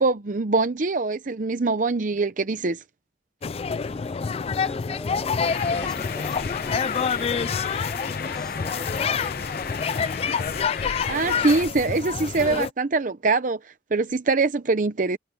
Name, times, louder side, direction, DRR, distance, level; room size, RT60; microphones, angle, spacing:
voice 1, 0.0-2.8 11.1-15.2, right 3 dB, 45° right, 0.7 m, -23 dB
sound 1, 3.4-12.7, left 6 dB, 35° left, 0.3 m, -27 dB
voice 2, 3.8-7.8 8.0-10.0, equal, 5° left, 4.0 m, -44 dB
sound 2, 5.4-11.6, left 6 dB, 55° left, 0.8 m, -34 dB
head